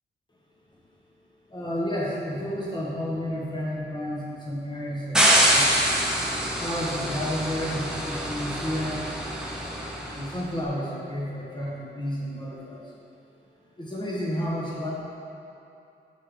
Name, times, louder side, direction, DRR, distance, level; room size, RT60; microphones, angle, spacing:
voice 1, 1.5-5.9 6.6-9.0 10.1-12.9 13.8-14.9, equal, 25° left, -5 dB, 1.4 m, -31 dB
sound 1, 5.1-10.3, right 1 dB, 5° right, 0.8 m, -25 dB
7.6 x 5.5 x 5.1 m, 2.7 s
wide cardioid pair, 175°, 19 cm